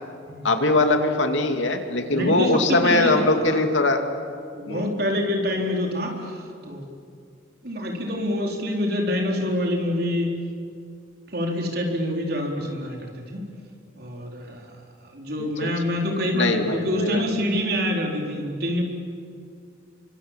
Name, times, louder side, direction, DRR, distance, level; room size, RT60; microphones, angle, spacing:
voice 1, 0.4-4.0 4.7-4.9 15.4-15.7 16.3-17.2, left 2 dB, 85° left, 5 dB, 2.6 m, -21 dB
voice 2, 2.1-3.6 4.5-6.8 7.6-10.4 11.3-13.4 14.0-14.7 15.1-18.8, left 1 dB, 55° right, 1 dB, 4.3 m, -26 dB
29.5 x 25.0 x 7.6 m, 2.3 s
head